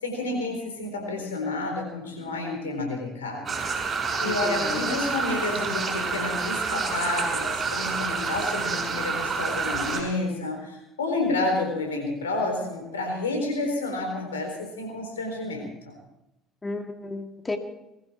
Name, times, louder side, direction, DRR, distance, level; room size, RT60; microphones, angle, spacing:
voice 1, 0.0-3.6 3.9-15.9, left 2 dB, 85° left, 2 dB, 4.1 m, -30 dB
sound 1, 3.5-10.0, right 5 dB, 35° right, 6.1 m, -28 dB
voice 2, 4.2-5.0 16.6-17.6, left 3 dB, 20° left, 6 dB, 2.1 m, -33 dB
20.5 x 14.5 x 4.5 m, 0.87 s
hypercardioid pair, 60°, 0 cm